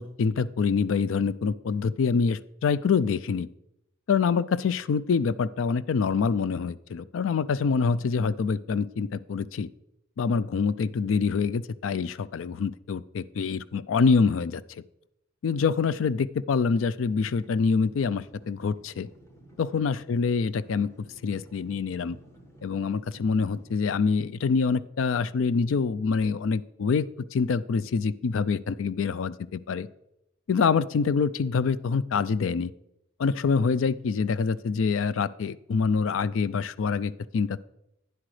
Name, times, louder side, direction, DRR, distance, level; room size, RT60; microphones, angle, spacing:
voice 1, 0.0-3.5 4.1-9.7 10.2-14.8 15.4-19.1 19.6-20.9 21.2-22.2 22.6-29.9 30.5-32.7 33.2-37.6, left 5 dB, 70° left, 17 dB, 0.4 m, -26 dB
sound 1, 17.1-23.8, right 1 dB, 15° left, 1.3 m, -53 dB
11.5 x 9.8 x 3.2 m, 0.82 s
head